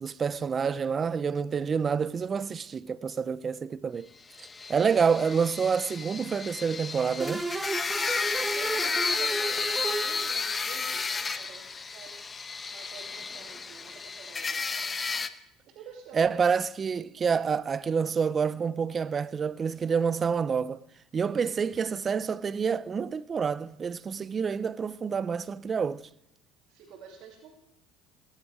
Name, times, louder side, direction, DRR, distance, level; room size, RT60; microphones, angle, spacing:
voice 1, 0.0-4.1 4.4-7.5 16.1-20.8 21.1-26.0, right 6 dB, 35° right, 0.6 m, -28 dB
sound 1, 4.4-15.3, left 4 dB, 30° left, 0.9 m, -32 dB
sound 2, 7.2-10.8, right 2 dB, 15° right, 1.1 m, -34 dB
voice 2, 8.1-12.3 12.7-14.6 15.6-16.4 17.2-17.3 26.7-27.6, right 7 dB, 65° right, 2.6 m, -49 dB
19.5 x 10.5 x 4.8 m
supercardioid pair, 85°, 0 cm